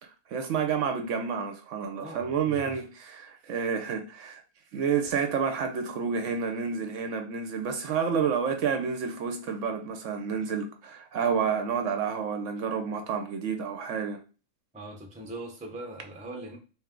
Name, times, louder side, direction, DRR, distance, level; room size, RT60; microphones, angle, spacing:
voice 1, 0.0-4.4 4.7-14.2, right 6 dB, 70° right, 0.8 m, -29 dB
voice 2, 1.9-2.8 14.7-16.6, right 1 dB, 10° right, 0.4 m, -41 dB
3.3 x 3.0 x 3.6 m
omnidirectional pair, 1.5 m